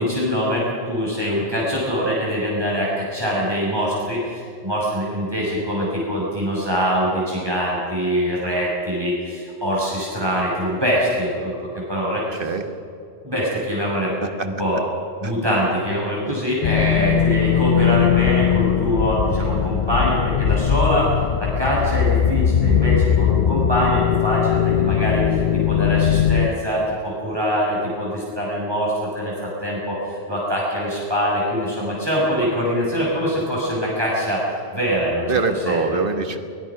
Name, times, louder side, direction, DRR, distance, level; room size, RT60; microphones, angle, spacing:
voice 1, 0.0-11.5 11.9-12.4 13.2-14.8 15.2-21.1 21.4-25.4 25.7-29.3 29.6-34.4 34.7-35.2 35.6-36.0, equal, 20° right, -5 dB, 5.7 m, -23 dB
voice 2, 12.3-12.6 14.2-14.5 15.2-15.3 16.3-16.4 35.3-36.4, right 4 dB, 50° right, 7 dB, 1.6 m, -23 dB
sound 1, 16.6-26.5, left 9 dB, 50° left, 0.5 m, -20 dB
22.0 x 20.0 x 5.9 m, 2.7 s
omnidirectional pair, 1.2 m